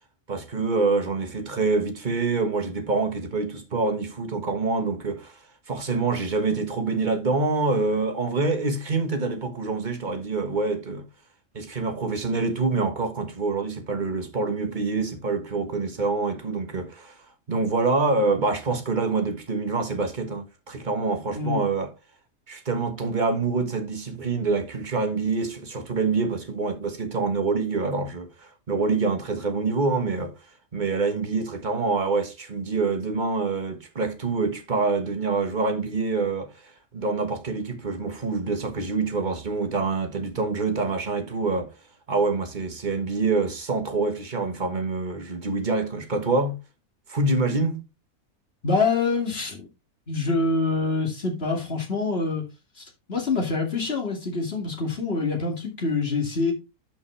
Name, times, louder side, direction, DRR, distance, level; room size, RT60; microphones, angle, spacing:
voice 1, 0.3-5.4 5.7-11.0 11.5-17.2 17.5-21.9 22.5-30.3 30.7-36.5 36.9-41.7 42.1-46.6 47.1-47.8, right 3 dB, 30° right, 1.5 m, -26 dB
voice 2, 21.3-21.7 48.6-49.7 50.1-52.4 52.8-56.5, left 4 dB, 40° left, 2.4 m, -26 dB
11.5 x 5.5 x 3.3 m
omnidirectional pair, 1.6 m